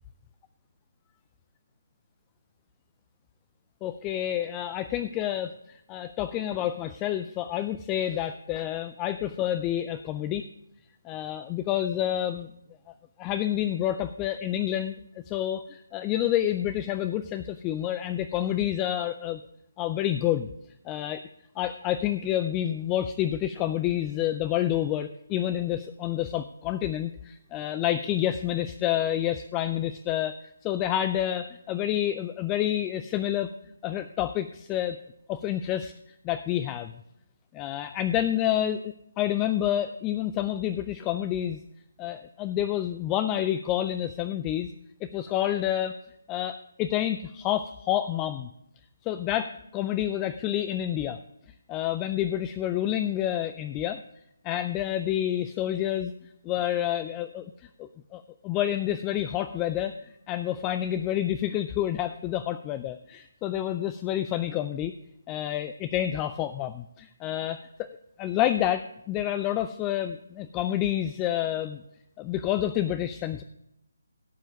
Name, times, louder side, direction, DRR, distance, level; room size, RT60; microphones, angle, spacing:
voice 1, 3.8-10.5 11.0-12.5 13.2-14.9 15.3-19.4 19.8-20.5 20.9-21.2 21.6-30.3 30.6-33.5 33.8-35.0 35.3-35.9 36.2-36.9 37.5-41.6 42.0-44.7 45.0-45.9 46.3-48.5 49.0-51.2 51.7-54.0 54.4-56.1 56.4-57.5 57.8-64.9 65.3-71.8 72.2-73.4, left 12 dB, 20° left, 12 dB, 0.3 m, -28 dB
16.0 x 5.6 x 5.0 m, 0.81 s
figure-of-eight pair, 145°, 0 cm